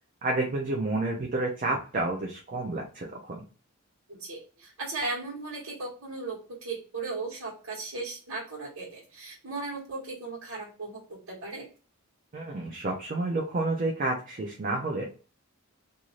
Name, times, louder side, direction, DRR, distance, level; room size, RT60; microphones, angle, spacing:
voice 1, 0.2-3.4 12.3-15.0, right 2 dB, 40° right, 0 dB, 0.5 m, -30 dB
voice 2, 4.1-11.7, right 3 dB, 80° right, -6 dB, 1.4 m, -37 dB
2.6 x 2.4 x 3.0 m, 0.36 s
head